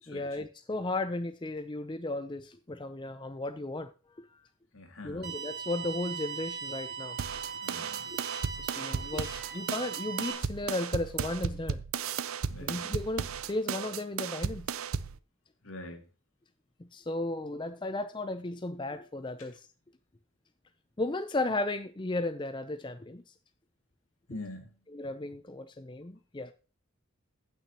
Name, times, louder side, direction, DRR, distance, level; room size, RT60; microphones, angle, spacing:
voice 1, 0.1-3.9 4.2-4.4 5.0-7.2 7.7-8.2 8.6-11.8 12.6-14.7 16.8-19.7 21.0-23.3 24.9-26.5, left 2 dB, 20° left, 0.5 m, -35 dB
voice 2, 4.7-5.3 7.6-8.2 12.5-12.8 15.6-16.1 24.3-24.7, left 2 dB, 75° left, 2.5 m, -44 dB
sound 1, 5.2-10.3, right 6 dB, 50° right, 3.0 m, -39 dB
sound 2, 7.2-15.2, right 6 dB, 80° right, 0.6 m, -35 dB
15.5 x 6.1 x 2.9 m
head